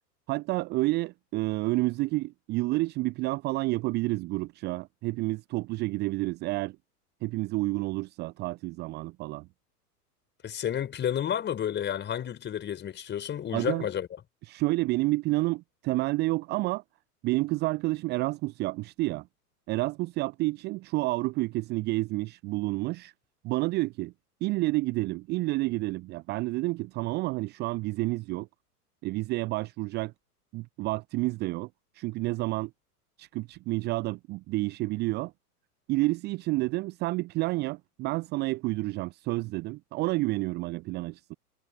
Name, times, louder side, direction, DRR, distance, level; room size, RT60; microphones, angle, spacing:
voice 1, 0.3-6.8 7.2-9.5 13.5-13.9 14.5-16.8 17.2-19.3 19.7-23.1 23.4-24.1 24.4-28.5 29.0-30.1 30.5-31.7 31.9-32.7 33.2-35.3 35.9-41.3, right 21 dB, 20° right, 0.6 m, -29 dB
voice 2, 10.4-14.1, left 9 dB, 25° left, 5.9 m, -31 dB
figure-of-eight pair, 95°, 46 cm